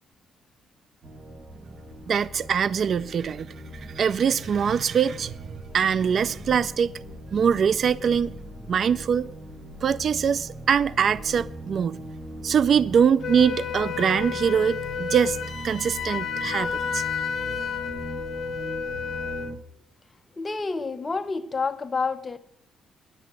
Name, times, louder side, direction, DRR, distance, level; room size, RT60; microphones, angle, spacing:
sound 1, 1.0-19.6, right 1 dB, 35° right, 2.0 m, -40 dB
voice 1, 2.1-5.3 5.7-6.9 7.3-8.3 8.7-9.3 9.8-12.0 12.4-15.4 15.6-17.0, right 7 dB, 55° right, 0.4 m, -23 dB
Wind instrument woodwind instrument, 13.2-19.6, left 7 dB, 55° left, 1.1 m, -31 dB
voice 2, 20.4-22.4, left 4 dB, 25° left, 1.0 m, -28 dB
10.5 x 8.5 x 9.1 m
cardioid pair, 90°, 0 cm